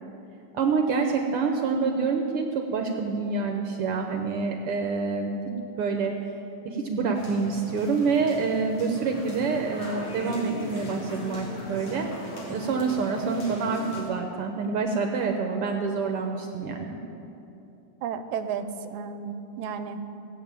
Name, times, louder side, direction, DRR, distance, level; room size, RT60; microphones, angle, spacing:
voice 1, 0.5-5.4 5.8-6.2 6.6-12.1 12.5-17.0, right 4 dB, 70° right, 4 dB, 1.5 m, -27 dB
sound 1, 7.1-14.0, left 1 dB, 55° left, 3.8 m, -39 dB
voice 2, 18.0-20.1, right 7 dB, 90° right, 10 dB, 2.1 m, -33 dB
17.5 x 7.3 x 8.8 m, 2.9 s
omnidirectional pair, 3.4 m